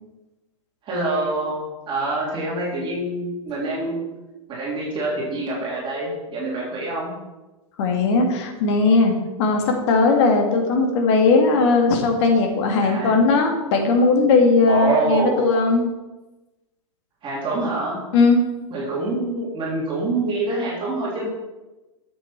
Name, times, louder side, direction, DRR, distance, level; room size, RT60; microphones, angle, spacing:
voice 1, 0.8-1.5 1.9-4.0 4.5-7.1 12.8-13.1 14.7-15.4 17.2-18.0 18.7-21.3, right 2 dB, 30° right, -6 dB, 3.3 m, -25 dB
voice 2, 7.8-15.8 18.1-18.4, left 3 dB, 55° left, 3 dB, 1.9 m, -18 dB
8.7 x 7.6 x 4.4 m, 1.1 s
hypercardioid pair, 105°, 18 cm